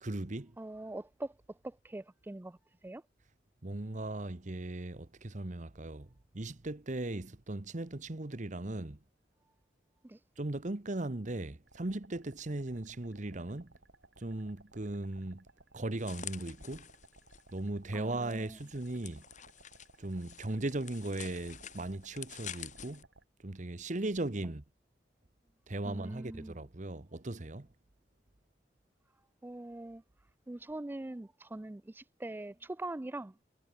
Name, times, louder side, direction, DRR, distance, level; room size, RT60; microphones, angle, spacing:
voice 1, 0.0-0.6 3.6-6.1 6.3-9.0 10.4-13.7 14.2-15.5 15.7-16.9 17.5-19.2 20.0-23.0 23.4-24.6 25.7-27.7, right 2 dB, 45° right, 1.1 m, -38 dB
voice 2, 0.6-2.6 2.8-3.0 10.0-10.2 17.9-18.6 25.8-26.6 29.4-30.0 30.5-33.3, right 2 dB, 10° right, 0.3 m, -43 dB
sound 1, 11.7-23.2, right 2 dB, 85° right, 3.2 m, -61 dB
sound 2, 16.0-17.6 18.3-23.0, left 9 dB, 45° left, 2.1 m, -48 dB
head